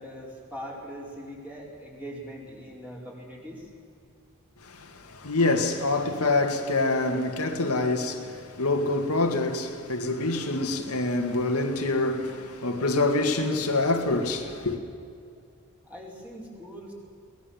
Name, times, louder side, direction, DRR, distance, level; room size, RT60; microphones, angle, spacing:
voice 1, 0.0-3.7 15.8-16.9, equal, 5° right, 4.6 m, -41 dB
voice 2, 4.6-14.8, left 2 dB, 80° left, 2.1 m, -26 dB
22.5 x 20.0 x 7.2 m
head